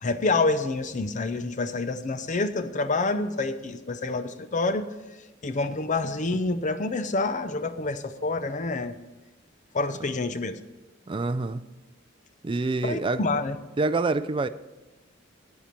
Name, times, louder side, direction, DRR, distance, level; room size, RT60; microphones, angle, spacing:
voice 1, 0.0-4.9 5.4-9.0 9.7-10.6 12.8-13.6, left 3 dB, 40° left, 0.6 m, -27 dB
voice 2, 11.1-11.6 12.4-13.2 13.8-14.5, right 3 dB, 25° right, 0.4 m, -26 dB
12.5 x 8.5 x 4.5 m
head